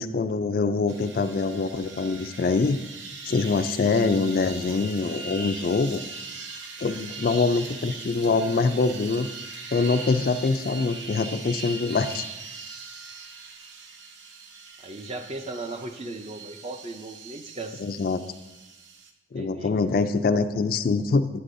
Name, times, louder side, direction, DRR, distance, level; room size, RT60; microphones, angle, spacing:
voice 1, 0.0-2.8 3.2-6.0 6.8-9.3 9.7-12.2 17.8-18.2 19.3-21.3, left 4 dB, 50° left, 9 dB, 0.3 m, -24 dB
sound 1, 0.9-19.1, right 4 dB, 70° right, 0.8 m, -40 dB
voice 2, 14.8-17.8 19.4-19.7, right 2 dB, 30° right, 6 dB, 0.5 m, -37 dB
9.8 x 8.1 x 2.6 m, 1.1 s
head